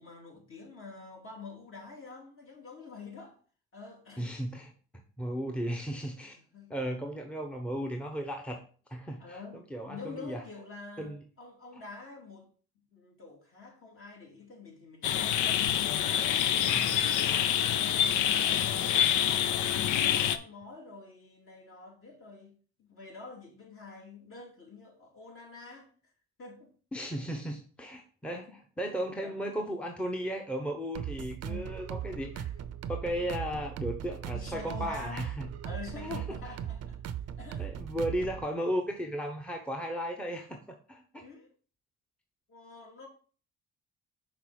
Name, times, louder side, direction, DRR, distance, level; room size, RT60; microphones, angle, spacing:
voice 1, 0.0-3.4 3.7-4.3 6.5-6.7 9.2-12.5 12.9-16.7 17.2-17.6 17.8-22.5 22.8-25.9 26.4-26.7 28.2-28.6 29.2-29.3 31.4-31.8 32.3-32.5 34.3-35.3 35.6-37.0 37.4-37.7 41.2-41.5 42.5-43.1, left 3 dB, 45° left, 2.6 m, -47 dB
voice 2, 4.2-4.7 5.2-6.3 6.7-8.6 8.9-9.4 9.7-10.4 11.0-11.2 11.7-11.8 16.7-17.0 26.9-28.5 28.8-32.4 32.9-35.5 35.9-36.4 37.6-41.2, equal, 5° left, 0.9 m, -35 dB
sound 1, 15.0-20.4, left 10 dB, 75° left, 0.6 m, -26 dB
sound 2, 30.9-38.5, right 9 dB, 55° right, 0.6 m, -38 dB
5.9 x 3.9 x 4.8 m
cardioid pair, 90°, 30 cm